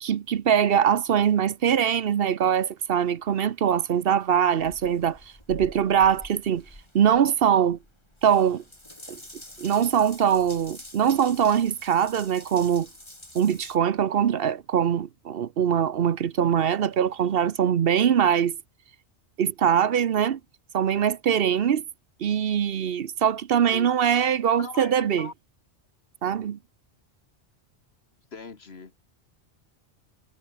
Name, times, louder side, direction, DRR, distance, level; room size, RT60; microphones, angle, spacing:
voice 1, 0.0-5.2 5.5-6.6 6.9-7.8 8.2-8.6 9.1-9.2 9.6-12.9 13.3-18.6 19.4-20.4 20.7-21.8 22.2-25.3 26.2-26.6, right 8 dB, 60° right, 0.9 m, -22 dB
Water tap faucet / Bathtub (filling or washing) / Drip, 4.6-13.8, left 1 dB, 25° left, 5.0 m, -47 dB
voice 2, 24.5-25.3 28.3-28.9, left 4 dB, 65° left, 2.2 m, -40 dB
omnidirectional pair, 1.1 m